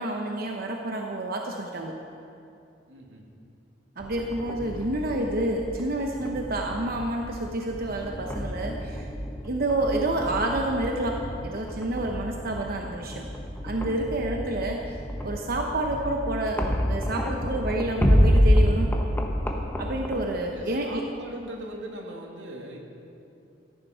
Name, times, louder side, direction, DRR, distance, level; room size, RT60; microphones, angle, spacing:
voice 1, 0.0-2.0 4.0-9.1 9.4-13.3 13.6-18.9 19.8-21.0, right 1 dB, 55° right, 1 dB, 0.9 m, -29 dB
voice 2, 2.9-3.2 20.5-22.8, right 1 dB, 90° right, 0 dB, 2.0 m, -40 dB
sound 1, 4.0-20.2, equal, 10° left, 1.1 m, -28 dB
14.0 x 10.5 x 5.6 m, 2.6 s
head